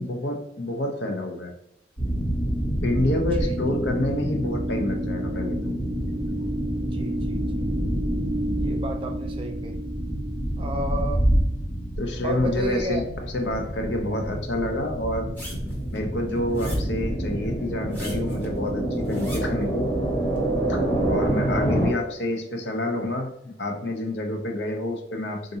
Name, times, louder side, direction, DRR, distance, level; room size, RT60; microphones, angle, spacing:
voice 1, 0.0-1.5 2.8-5.7 12.0-13.0 13.3-15.3 15.9-19.9 20.7-25.6, left 1 dB, 65° left, 3 dB, 0.6 m, -28 dB
sound 1, 2.0-21.9, right 1 dB, 45° left, 1.3 m, -27 dB
voice 2, 6.8-7.7 8.6-9.8 10.6-11.2 12.2-13.0, right 1 dB, 30° right, 3 dB, 0.4 m, -32 dB
sound 2, 15.4-17.0 17.8-19.7 20.4-20.5, equal, 10° left, 0.8 m, -35 dB
3.7 x 2.6 x 2.7 m, 0.77 s
head